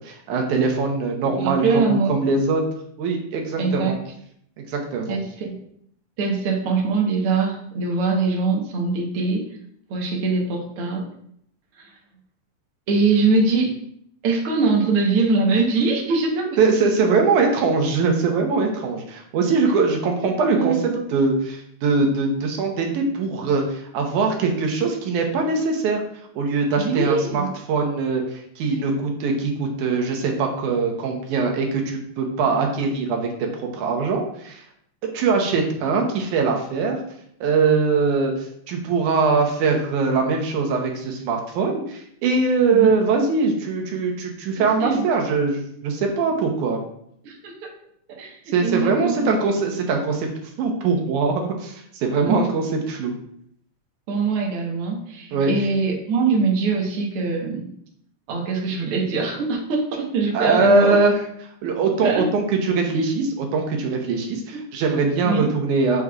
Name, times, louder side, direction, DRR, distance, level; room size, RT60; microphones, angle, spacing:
voice 1, 0.0-2.6 3.0-3.9 4.7-5.2 16.6-26.0 26.4-27.4 27.7-33.3 33.6-34.6 35.1-37.0 37.4-46.8 48.5-50.3 50.6-53.1 55.3-55.5 60.3-61.1 61.6-66.0, right 4 dB, 90° right, 2 dB, 2.4 m, -22 dB
voice 2, 1.4-2.2 3.6-4.0 5.1-5.6 6.2-9.4 9.9-11.0 11.8-11.9 12.9-13.7 14.2-16.6 20.2-21.2 26.8-27.5 42.7-42.9 44.6-45.1 47.2-47.7 48.2-49.3 52.2-52.5 54.1-57.7 58.3-60.9 62.0-62.2 65.2-65.5, right 4 dB, 60° right, -1 dB, 1.8 m, -23 dB
6.5 x 6.1 x 2.4 m, 0.69 s
omnidirectional pair, 3.4 m